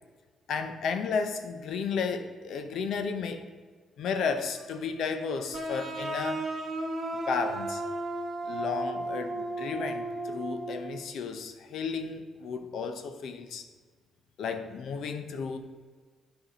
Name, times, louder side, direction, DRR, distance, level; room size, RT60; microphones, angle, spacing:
voice 1, 0.5-3.5 4.0-6.5 7.3-7.8 8.5-13.6 14.4-15.6, left 5 dB, 70° left, 7 dB, 0.9 m, -33 dB
sound 1, 5.5-11.0, right 2 dB, 40° right, 1.7 m, -34 dB
9.1 x 4.8 x 5.5 m, 1.5 s
cardioid pair, 90°, 0 cm